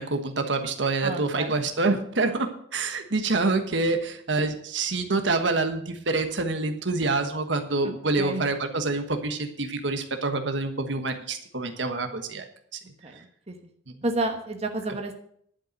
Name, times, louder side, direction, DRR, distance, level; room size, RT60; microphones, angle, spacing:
voice 1, 0.0-12.4 12.7-12.8, right 3 dB, 75° right, 7 dB, 1.3 m, -26 dB
voice 2, 1.0-1.5 8.2-8.4 13.0-13.5 14.0-15.1, right 2 dB, 35° right, 4 dB, 1.3 m, -30 dB
11.5 x 5.5 x 8.8 m, 0.65 s
head